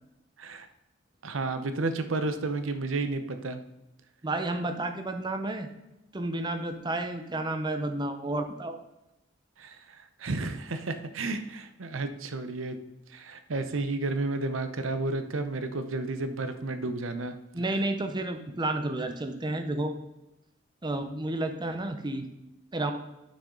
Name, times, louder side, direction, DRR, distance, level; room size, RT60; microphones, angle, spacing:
voice 1, 1.2-3.6 9.6-12.8 13.1-17.4, right 3 dB, 80° right, 9 dB, 0.8 m, -32 dB
voice 2, 4.2-5.7 6.1-8.8 17.5-20.0 20.8-22.3 22.7-22.9, right 2 dB, 20° right, 6 dB, 0.7 m, -31 dB
9.7 x 6.3 x 3.8 m, 0.95 s
head